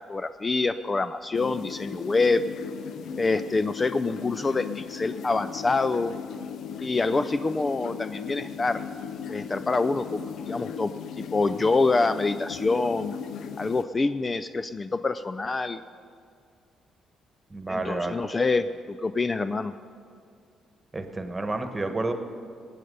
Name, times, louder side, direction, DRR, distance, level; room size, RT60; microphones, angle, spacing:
voice 1, 0.1-2.4 3.2-6.1 6.8-8.8 9.3-10.2 10.5-10.9 11.2-13.1 13.6-15.8 17.7-19.7, left 3 dB, 30° left, 12 dB, 0.3 m, -26 dB
sound 1, 1.3-13.8, left 7 dB, 75° left, 0.6 m, -37 dB
voice 2, 17.5-18.2 20.9-22.1, right 2 dB, 20° right, 7 dB, 1.3 m, -30 dB
18.0 x 8.7 x 5.4 m, 2.3 s
cardioid pair, 90°, 0 cm